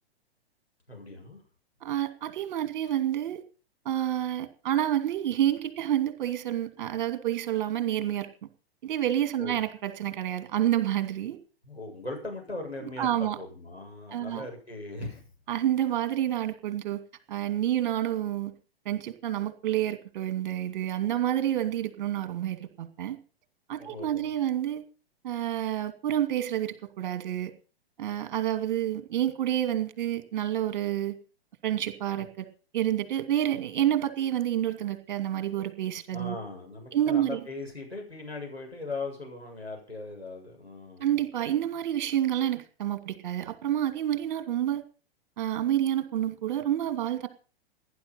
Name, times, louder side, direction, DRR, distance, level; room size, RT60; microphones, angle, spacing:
voice 1, 0.9-1.4 9.4-9.6 11.6-15.3 23.8-24.3 32.1-32.2 36.1-41.2, left 2 dB, 90° left, 0 dB, 7.5 m, -39 dB
voice 2, 1.8-3.4 3.8-8.3 8.8-11.4 13.0-13.4 14.1-14.5 15.5-17.0 17.3-18.5 18.8-23.2 23.7-24.8 25.2-27.5 28.0-31.2 31.6-32.5 32.7-36.4 36.9-37.4 41.0-44.8 45.4-47.3, right 11 dB, 45° right, 10 dB, 2.6 m, -28 dB
18.5 x 11.0 x 5.7 m, 0.37 s
figure-of-eight pair, 110°, 30 cm